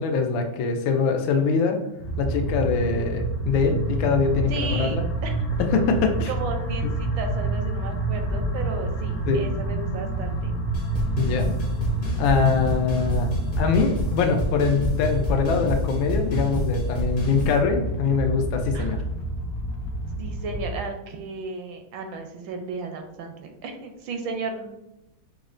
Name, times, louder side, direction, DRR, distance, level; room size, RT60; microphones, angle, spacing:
voice 1, 0.0-1.8 2.2-5.0 5.7-6.3 6.8-6.9 9.3-9.4 11.2-11.5 12.2-13.3 13.6-19.0, left 5 dB, 85° left, 4 dB, 1.3 m, -23 dB
sound 1, 2.0-20.8, right 2 dB, 70° left, 0.9 m, -28 dB
voice 2, 4.5-5.3 6.3-10.5 18.7-19.0 20.2-24.7, right 4 dB, 80° right, 5 dB, 1.3 m, -34 dB
sound 2, 10.7-17.6, equal, 45° left, 0.6 m, -29 dB
5.3 x 2.1 x 2.4 m, 0.89 s
omnidirectional pair, 2.1 m